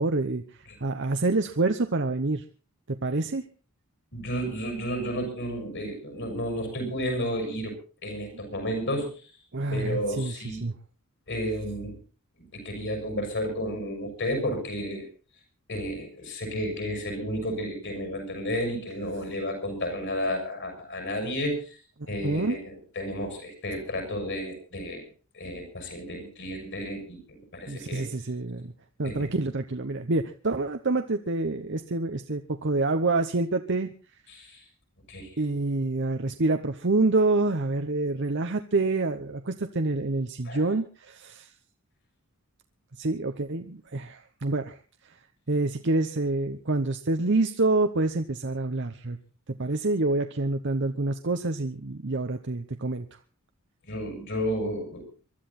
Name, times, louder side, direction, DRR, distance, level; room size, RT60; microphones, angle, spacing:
voice 1, 0.0-2.4 2.9-3.4 9.5-10.7 22.2-22.6 27.7-28.7 29.0-33.9 35.4-41.5 43.0-44.8 45.5-49.2 49.6-53.0, right 2 dB, 55° right, 7 dB, 0.9 m, -27 dB
voice 2, 4.1-9.1 9.7-10.6 11.3-12.0 12.4-15.1 15.7-21.8 22.1-25.0 25.3-28.1 29.0-29.3 34.3-34.6 35.1-35.3 40.4-40.6 53.9-55.0, equal, 55° left, 5 dB, 6.8 m, -32 dB
23.5 x 12.5 x 4.2 m, 0.37 s
head